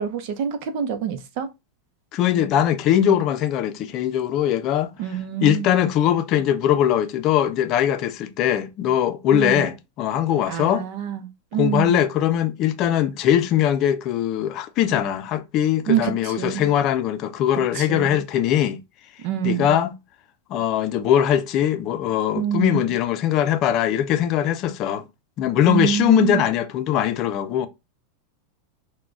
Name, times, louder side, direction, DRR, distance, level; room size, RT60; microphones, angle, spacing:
voice 1, 0.0-1.5 5.0-5.7 9.3-9.7 10.5-12.0 15.9-16.7 17.7-18.2 19.2-19.7 22.4-22.9 25.6-26.4, right 10 dB, 55° right, 0.6 m, -26 dB
voice 2, 2.1-4.9 5.4-10.8 11.6-18.8 19.4-19.9 20.5-25.0 25.4-27.7, left 10 dB, 45° left, 0.5 m, -21 dB
5.7 x 2.2 x 2.4 m
hypercardioid pair, 100°, 0 cm